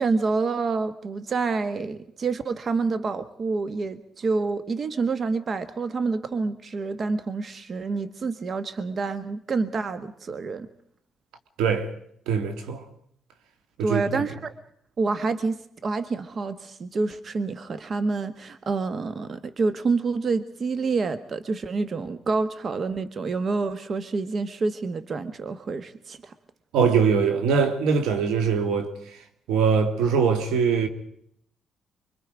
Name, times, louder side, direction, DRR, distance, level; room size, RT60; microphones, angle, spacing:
voice 1, 0.0-10.7 13.8-14.5 15.0-26.3, right 4 dB, 45° right, 1.1 m, -28 dB
voice 2, 11.6-11.9 12.3-12.8 13.8-14.2 26.7-28.9 29.5-30.9, right 6 dB, 90° right, 2.0 m, -22 dB
25.0 x 23.0 x 5.0 m
cardioid pair, 90°, 0 cm